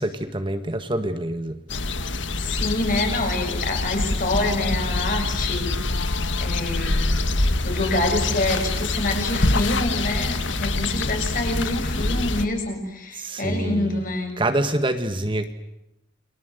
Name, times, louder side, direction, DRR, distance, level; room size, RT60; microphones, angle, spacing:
voice 1, 0.0-1.6 13.1-14.0 14.4-15.5, right 1 dB, 25° right, 8 dB, 1.6 m, -26 dB
sound 1, 1.7-12.5, left 2 dB, 75° left, 1.7 m, -25 dB
voice 2, 2.3-5.7 6.0-7.1 7.6-14.4, left 2 dB, 45° left, 4 dB, 7.2 m, -26 dB
29.5 x 24.0 x 8.0 m, 0.87 s
head